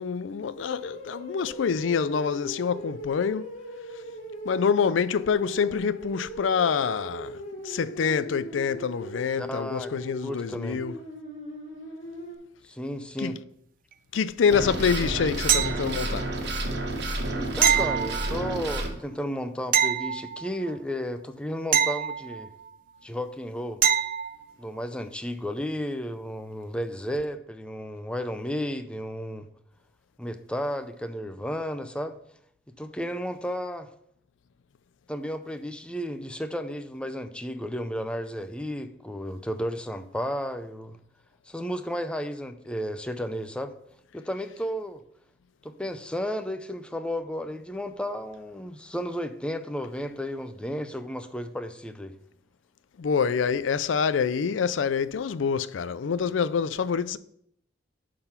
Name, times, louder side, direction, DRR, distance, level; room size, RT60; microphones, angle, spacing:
voice 1, 0.0-3.5 4.4-7.4 7.6-11.0 13.2-13.3 14.1-16.3 53.0-57.2, left 6 dB, 90° left, 0.4 m, -26 dB
sound 1, 0.6-12.4, equal, 45° left, 3.0 m, -39 dB
voice 2, 9.4-10.8 12.6-13.4 17.3-22.5 23.0-23.8 24.6-29.5 30.2-32.2 32.8-33.9 35.1-41.0 41.5-43.7 44.1-45.0 45.6-52.1, equal, 5° left, 0.6 m, -33 dB
sound 2, 14.5-18.9, right 1 dB, 65° right, 1.4 m, -30 dB
sound 3, 15.5-16.2 17.6-18.7 19.7-20.8 21.7-22.7 23.8-24.4 27.2-27.3, right 8 dB, 45° right, 0.4 m, -25 dB
11.0 x 3.9 x 5.7 m
head